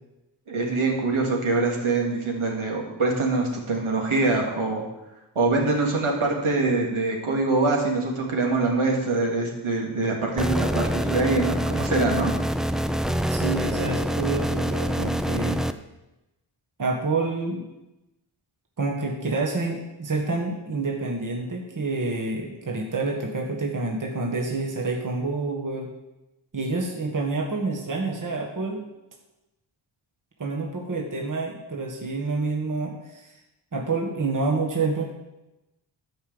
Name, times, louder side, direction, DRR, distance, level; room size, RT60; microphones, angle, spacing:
voice 1, 0.5-4.8 5.3-12.3, right 3 dB, 80° right, 0 dB, 2.6 m, -24 dB
sound 1, 10.4-15.7, equal, ahead, 0.4 m, -26 dB
voice 2, 13.3-15.6 16.8-17.7 18.8-25.9 26.5-28.8 30.4-33.3 33.7-35.0, right 3 dB, 40° right, 0 dB, 1.5 m, -28 dB
12.5 x 5.2 x 7.9 m, 0.98 s
wide cardioid pair, 105°, 49 cm